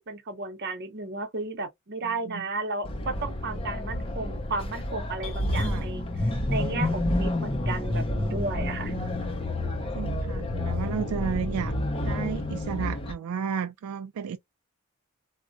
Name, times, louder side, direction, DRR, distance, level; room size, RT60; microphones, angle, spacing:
voice 1, 0.1-8.9, right 3 dB, 50° right, 0.8 m, -34 dB
sound 1, 2.8-13.1, left 1 dB, 25° left, 0.5 m, -29 dB
voice 2, 9.9-11.7 12.1-14.4, right 7 dB, 80° right, 0.3 m, -33 dB
3.5 x 2.1 x 2.4 m
head